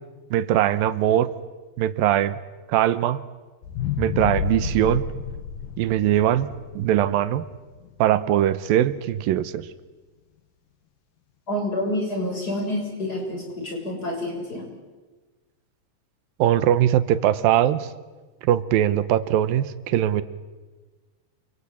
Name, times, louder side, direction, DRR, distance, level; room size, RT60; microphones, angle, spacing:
voice 1, 0.3-1.3 1.8-2.4 2.7-3.2 4.0-5.1 5.8-6.5 6.8-7.4 8.0-9.7 16.4-17.9 18.4-20.2, right 12 dB, 90° right, 15 dB, 2.8 m, -21 dB
sound 1, 3.6-7.9 8.4-8.5, left 7 dB, 80° left, 2.9 m, -30 dB
voice 2, 11.5-14.7, left 1 dB, 25° left, 1 dB, 7.2 m, -28 dB
29.5 x 23.0 x 8.7 m, 1.3 s
omnidirectional pair, 4.0 m